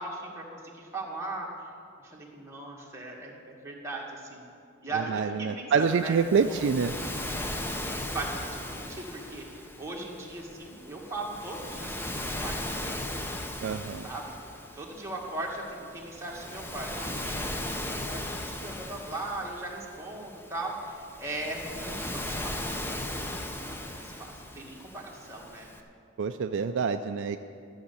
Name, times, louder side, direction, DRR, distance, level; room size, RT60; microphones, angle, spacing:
voice 1, 0.0-1.5 2.0-4.4 4.8-6.6 8.1-12.9 14.0-14.3 14.7-25.7, right 2 dB, 15° right, -3 dB, 1.7 m, -38 dB
voice 2, 5.1-6.9 13.6-14.1 26.2-27.4, right 5 dB, 55° right, 8 dB, 0.3 m, -26 dB
Waves surf, 5.8-25.8, left 1 dB, 10° left, 0.6 m, -37 dB
13.0 x 6.6 x 8.2 m, 2.4 s
head